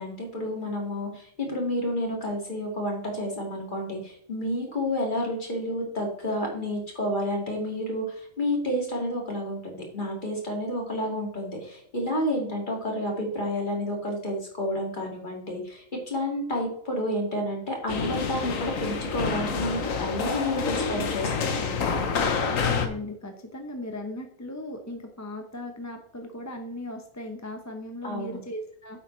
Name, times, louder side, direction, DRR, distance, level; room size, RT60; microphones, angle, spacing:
voice 1, 0.0-21.9 28.0-28.4, left 1 dB, 35° left, 0 dB, 2.3 m, -30 dB
sound 1, 17.9-22.9, left 5 dB, 80° left, 1.4 m, -28 dB
voice 2, 22.4-29.0, left 1 dB, 15° left, 5 dB, 0.7 m, -37 dB
9.3 x 7.7 x 3.2 m, 0.66 s
omnidirectional pair, 1.4 m